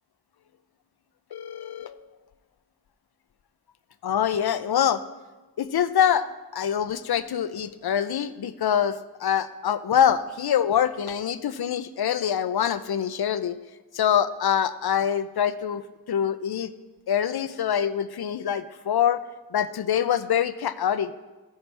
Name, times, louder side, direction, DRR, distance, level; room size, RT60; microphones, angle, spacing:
voice 1, 1.3-2.0 4.0-5.0 5.6-6.2 6.5-13.6 13.9-15.8 16.1-16.7 17.1-19.2 19.5-21.1, left 9 dB, 70° left, 13 dB, 0.6 m, -24 dB
15.0 x 5.6 x 3.3 m, 1.2 s
cardioid pair, 45°, 40 cm